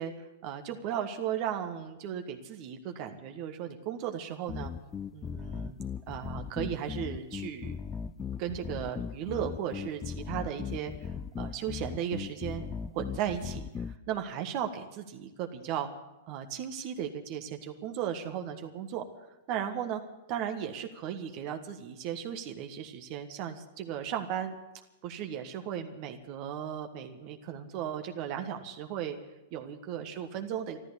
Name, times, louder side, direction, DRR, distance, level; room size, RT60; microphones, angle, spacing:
voice 1, 0.0-4.7 5.1-5.8 6.1-7.8 8.4-12.6 12.9-15.9 16.3-19.0 19.5-20.0 20.3-24.5 25.0-29.2 29.5-30.8, right 9 dB, 45° right, 6 dB, 1.5 m, -36 dB
sound 1, 4.5-14.0, left 6 dB, 20° left, 0.5 m, -38 dB
13.5 x 12.5 x 8.2 m, 1.0 s
hypercardioid pair, 115°, 0 cm